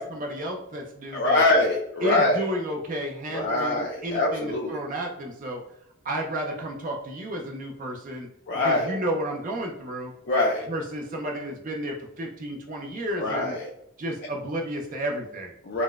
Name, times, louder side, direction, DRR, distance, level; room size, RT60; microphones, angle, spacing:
voice 1, 0.0-1.4 2.0-5.6 6.0-8.3 8.6-10.1 10.7-13.5 14.0-15.5, right 1 dB, 40° right, 1 dB, 0.4 m, -32 dB
voice 2, 1.1-2.4 3.3-4.8 8.5-8.9 10.3-10.7 13.2-13.7 15.6-15.8, left 2 dB, 55° left, -2 dB, 0.4 m, -24 dB
4.0 x 2.1 x 2.2 m, 0.80 s
head